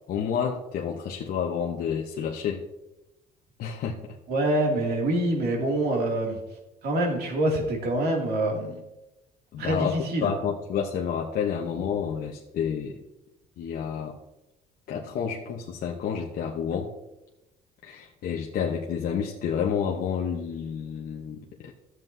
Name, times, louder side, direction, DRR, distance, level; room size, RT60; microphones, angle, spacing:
voice 1, 0.1-2.6 3.6-4.0 9.5-10.0 10.2-13.0 13.6-14.2 14.9-16.9 17.8-21.7, left 7 dB, 60° left, 0 dB, 0.9 m, -29 dB
voice 2, 4.3-6.4 6.8-8.8 9.6-10.3, right 1 dB, 70° right, 0 dB, 2.5 m, -25 dB
13.0 x 7.5 x 2.7 m, 0.97 s
cardioid pair, 110°, 17 cm